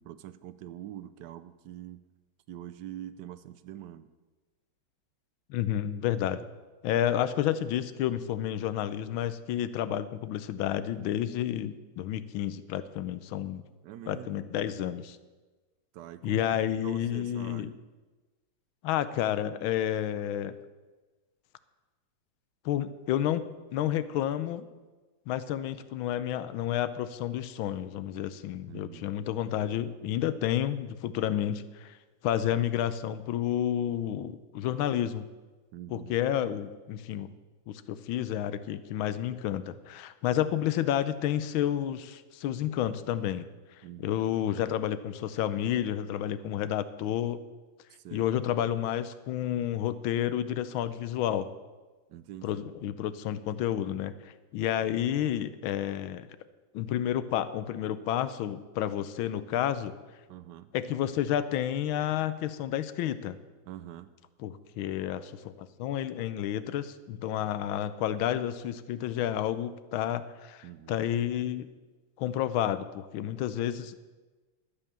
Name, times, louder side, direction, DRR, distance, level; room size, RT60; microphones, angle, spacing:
voice 1, 0.0-2.0 2.5-4.1 13.8-15.0 15.9-16.4 16.8-17.8 28.7-29.1 35.7-36.1 43.8-44.2 47.9-48.3 52.1-52.7 60.3-60.7 63.6-64.1 70.6-71.0, right 12 dB, 75° right, 13 dB, 1.1 m, -44 dB
voice 2, 5.5-6.5 6.8-13.6 14.1-15.2 16.2-17.7 18.8-20.5 22.6-23.5 23.7-24.7 25.3-32.0 32.2-35.3 35.9-37.3 37.7-43.5 44.0-47.4 48.1-51.5 52.4-56.3 56.7-59.9 60.7-63.4 64.4-71.7 72.2-74.0, left 11 dB, 85° left, 14 dB, 1.5 m, -30 dB
12.0 x 8.3 x 6.8 m, 1.3 s
omnidirectional pair, 2.2 m